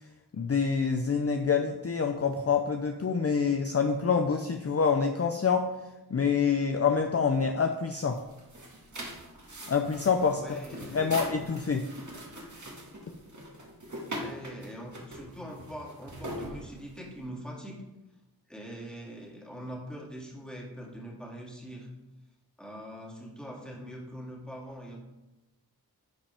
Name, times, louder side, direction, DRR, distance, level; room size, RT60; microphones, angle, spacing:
voice 1, 0.3-5.7 6.1-8.2 9.7-10.6 10.9-11.9, left 5 dB, 40° left, 5 dB, 0.5 m, -26 dB
sound 1, 8.1-17.2, right 1 dB, 50° right, 1.8 m, -42 dB
voice 2, 10.4-11.3 14.2-17.8 18.5-21.9 22.6-25.0, equal, ahead, -3 dB, 2.2 m, -43 dB
10.5 x 5.0 x 3.5 m, 1.0 s
wide cardioid pair, 45°, 38 cm